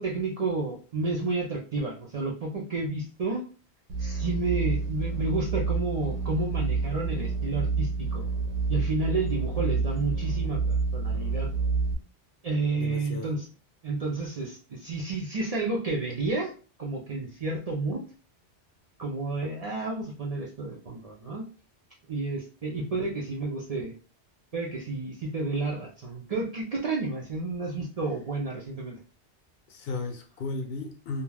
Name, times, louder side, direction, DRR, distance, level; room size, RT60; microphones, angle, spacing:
voice 1, 0.0-3.4 4.0-8.2 8.7-11.5 12.4-13.5 13.8-16.5 16.8-18.0 19.0-21.5 22.1-23.9 24.5-29.0, right 3 dB, 50° right, 0.5 m, -31 dB
sound 1, 3.9-11.9, right 4 dB, 85° right, 0.9 m, -28 dB
voice 2, 12.8-13.4 22.7-23.1 29.7-31.2, left 3 dB, 70° left, 0.7 m, -35 dB
2.3 x 2.2 x 3.3 m
omnidirectional pair, 1.1 m